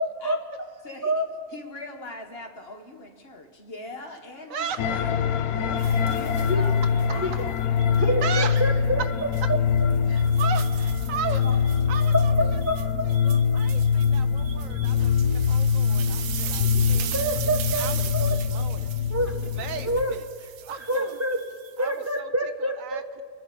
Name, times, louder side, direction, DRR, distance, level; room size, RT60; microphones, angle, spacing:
voice 1, 0.8-1.2 1.5-5.0 5.5-7.6 16.4-17.1 19.3-19.8, left 2 dB, 45° left, 4 dB, 1.4 m, -42 dB
voice 2, 4.5-5.0 8.2-8.7 10.1-17.3 17.8-18.9 19.6-20.3 20.7-21.2 21.8-22.3 22.6-23.2, right 7 dB, 70° right, 11 dB, 0.9 m, -36 dB
sound 1, 4.8-20.0, left 6 dB, 75° left, 1.1 m, -23 dB
sound 2, 5.8-7.1 7.8-8.7 9.2-9.4 9.9-22.1, right 10 dB, 85° right, 1.2 m, -39 dB
voice 3, 8.0-9.0 12.1-12.8 17.1-17.9 18.1-18.3 19.1-19.3 19.8-20.1 20.8-21.4 21.8-23.2, right 1 dB, 20° right, 2 dB, 0.4 m, -26 dB
27.0 x 10.5 x 4.3 m, 2.2 s
omnidirectional pair, 1.6 m